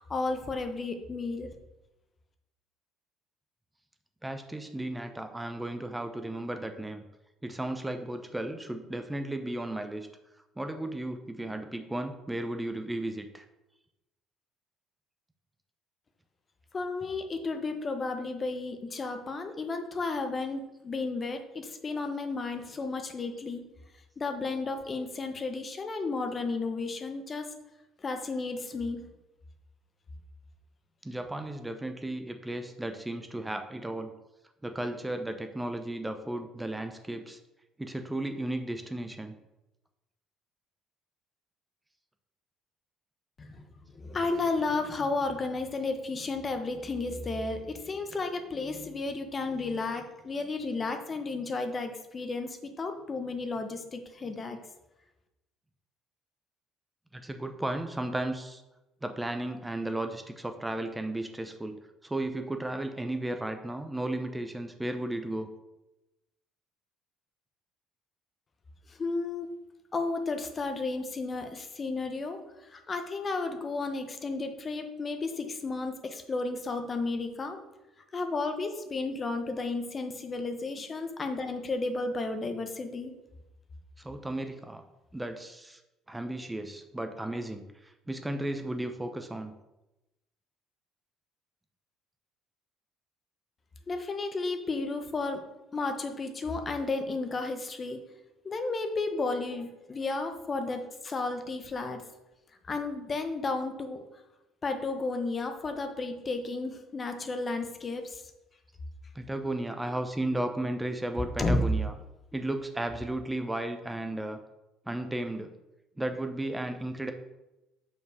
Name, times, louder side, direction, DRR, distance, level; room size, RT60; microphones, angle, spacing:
voice 1, 0.0-1.5 16.7-23.6 24.2-27.5 28.0-29.0 43.4-43.6 43.9-54.6 68.9-69.5 69.9-77.6 78.1-83.1 93.9-95.4 95.7-98.0 98.4-102.0 102.7-104.0 104.6-108.2 111.4-111.7, left 3 dB, 35° left, 6 dB, 1.1 m, -33 dB
voice 2, 4.2-7.0 7.4-10.1 10.6-13.5 31.0-34.1 34.6-37.4 37.8-39.3 57.1-58.6 59.0-65.5 84.0-84.8 85.1-85.8 86.1-89.5 109.1-111.9 112.3-114.4 114.9-115.5 116.0-117.1, right 1 dB, 10° right, 6 dB, 0.7 m, -34 dB
5.6 x 4.4 x 6.3 m, 0.98 s
hypercardioid pair, 55°, 0 cm